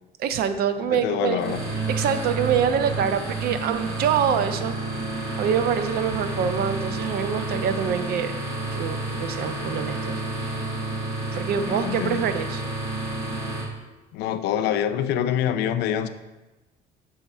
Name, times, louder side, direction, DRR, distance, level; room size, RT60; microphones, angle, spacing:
voice 1, 0.2-1.4 2.0-4.7 5.4-8.3 8.7-10.2 11.3-12.6, right 8 dB, 65° right, 11 dB, 0.5 m, -25 dB
voice 2, 0.8-1.6 6.3-6.5 11.6-12.3 14.1-16.1, left 10 dB, 80° left, 10 dB, 0.4 m, -26 dB
sound 1, 1.4-13.6, right 2 dB, 85° right, 2.1 m, -30 dB
6.8 x 3.5 x 4.2 m, 1.1 s
cardioid pair, 110°, 17 cm